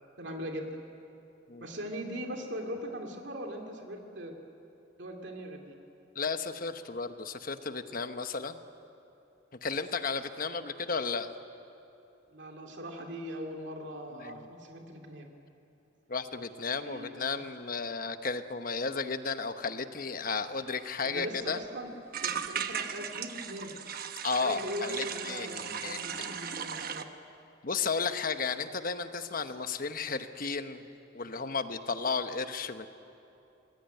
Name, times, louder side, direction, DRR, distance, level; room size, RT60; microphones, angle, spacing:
voice 1, 0.2-0.7 1.6-4.3 5.0-5.7 12.3-15.3 16.8-17.2 21.0-21.9 22.2-23.7 24.4-27.1, equal, 65° right, 2 dB, 2.4 m, -40 dB
voice 2, 6.1-8.6 9.6-11.3 14.1-14.5 16.1-21.6 24.2-26.3 27.6-30.9 31.1-32.9, left 4 dB, 45° left, 9 dB, 1.1 m, -34 dB
sound 1, 20.7-20.8 21.1-21.2 21.4-21.6 22.1-27.0, right 7 dB, 50° right, 1.1 m, -37 dB
26.5 x 21.0 x 9.2 m, 2.9 s
head